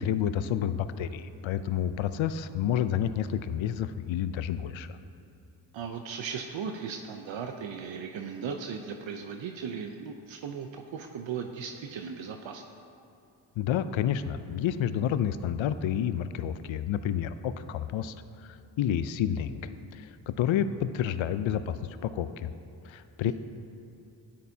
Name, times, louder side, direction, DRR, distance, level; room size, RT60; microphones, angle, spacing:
voice 1, 0.0-4.9 13.6-18.1 18.4-21.8 22.0-22.5 22.8-23.3, left 9 dB, 75° left, 12 dB, 0.6 m, -29 dB
voice 2, 5.7-12.6 23.2-23.3, right 6 dB, 75° right, 4 dB, 0.7 m, -37 dB
13.0 x 10.5 x 2.8 m, 2.7 s
cardioid pair, 55°, 47 cm